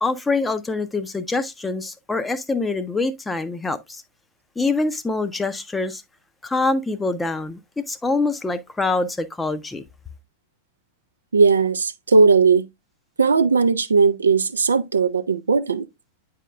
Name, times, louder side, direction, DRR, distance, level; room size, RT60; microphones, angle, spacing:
voice 1, 0.0-4.0 4.6-6.0 6.4-9.8, left 3 dB, 10° left, 0.6 m, -25 dB
voice 2, 11.3-12.7 13.2-15.9, right 4 dB, 75° right, 0.4 m, -17 dB
9.1 x 5.0 x 2.2 m
figure-of-eight pair, 90°, 0 cm